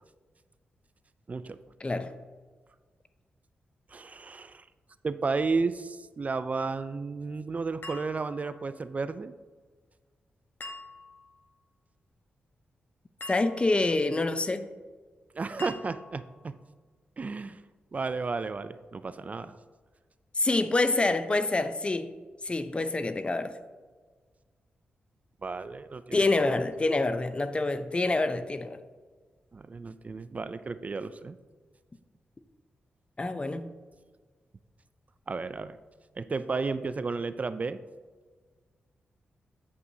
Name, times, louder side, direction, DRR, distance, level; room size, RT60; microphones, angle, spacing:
voice 1, 1.8-2.1 13.3-14.7 20.4-22.1 22.4-23.6 26.1-28.8 33.2-33.7, left 2 dB, 30° left, 0.5 m, -27 dB
voice 2, 3.9-4.7 5.0-9.3 15.3-16.2 17.2-17.6 17.9-19.6 25.4-26.6 29.5-31.4 35.3-35.8 36.2-37.8, right 4 dB, 40° right, 0.3 m, -33 dB
sound 1, 7.8-8.8 10.6-11.4 13.2-13.9 15.6-16.4, left 2 dB, 60° left, 1.1 m, -45 dB
8.5 x 7.5 x 2.7 m
cardioid pair, 75°, 4 cm